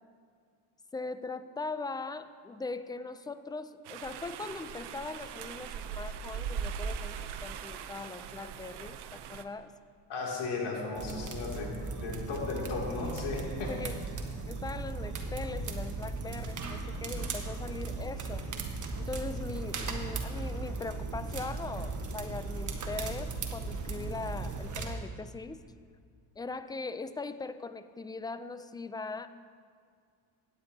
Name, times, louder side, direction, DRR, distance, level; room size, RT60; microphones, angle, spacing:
voice 1, 0.9-9.7 13.7-14.0 14.5-18.5 19.0-25.6 26.4-29.3, left 3 dB, 10° left, 12 dB, 0.4 m, -40 dB
sound 1, 3.9-9.4, right 7 dB, 65° right, 0.7 m, -40 dB
voice 2, 10.1-13.7, left 3 dB, 65° left, -2 dB, 2.8 m, -35 dB
sound 2, 10.9-24.9, right 3 dB, 40° right, 1.3 m, -37 dB
16.0 x 9.8 x 2.8 m, 2.1 s
supercardioid pair, 85°, 44 cm